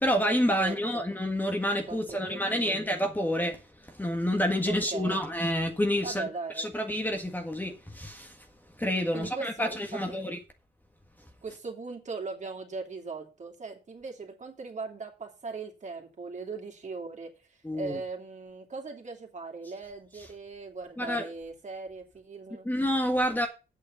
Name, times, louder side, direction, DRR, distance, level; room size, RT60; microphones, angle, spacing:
voice 1, 0.0-3.6 3.9-6.3 6.6-8.4 8.8-10.4 17.6-18.0 21.0-21.2 22.6-23.5, equal, 10° left, 1.6 m, -28 dB
voice 2, 0.6-1.0 1.9-2.9 4.7-5.3 6.0-6.7 9.1-10.2 11.4-17.3 17.7-22.7, right 4 dB, 40° right, 2.8 m, -39 dB
8.5 x 6.7 x 6.9 m
cardioid pair, 115°, 18 cm